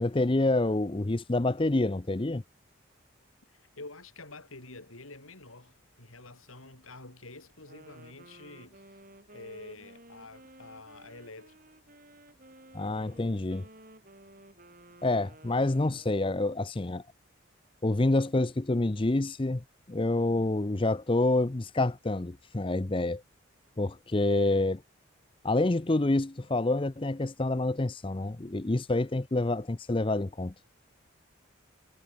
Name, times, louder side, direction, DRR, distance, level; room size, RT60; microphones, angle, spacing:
voice 1, 0.0-2.4 12.7-13.6 15.0-17.0 17.8-23.2 23.8-24.8 25.4-30.5, left 2 dB, 25° left, 0.6 m, -27 dB
voice 2, 3.5-9.0 9.3-11.5, left 2 dB, 90° left, 7.1 m, -48 dB
Wind instrument woodwind instrument, 7.5-16.5, right 1 dB, 40° right, 6.3 m, -54 dB
head